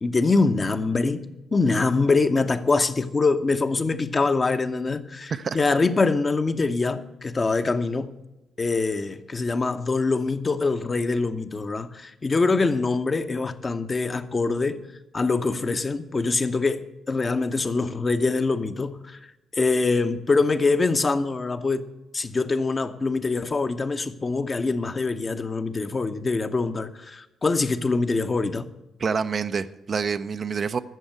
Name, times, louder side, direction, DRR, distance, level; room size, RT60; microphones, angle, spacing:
voice 1, 0.0-8.2 8.6-14.8 15.1-28.7, left 3 dB, 30° left, 0.9 m, -24 dB
voice 2, 29.0-30.8, right 6 dB, 45° right, 0.6 m, -27 dB
14.0 x 7.1 x 7.9 m
figure-of-eight pair, 40°, 0 cm